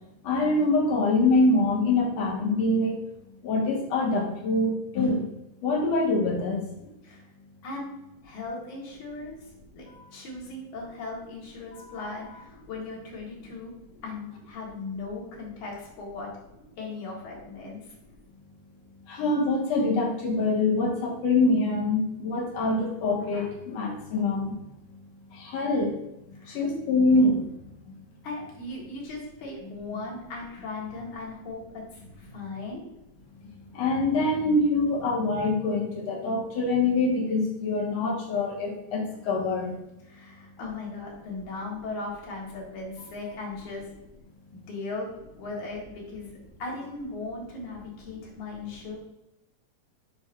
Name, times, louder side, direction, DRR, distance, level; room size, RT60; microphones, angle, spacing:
voice 1, 0.2-3.0 3.4-5.2 5.6-6.6 9.9-10.0 11.7-11.8 19.1-24.5 25.3-26.0 26.4-27.4 27.9-28.0 33.7-39.8, left 2 dB, 65° left, -2 dB, 2.4 m, -25 dB
voice 2, 8.2-9.4 9.7-13.7 14.0-16.4 16.8-17.9 26.4-26.6 28.2-32.8 40.0-43.9 44.5-45.1 45.4-49.0, left 3 dB, 90° left, -3 dB, 3.1 m, -38 dB
6.9 x 2.6 x 5.6 m, 0.88 s
omnidirectional pair, 3.3 m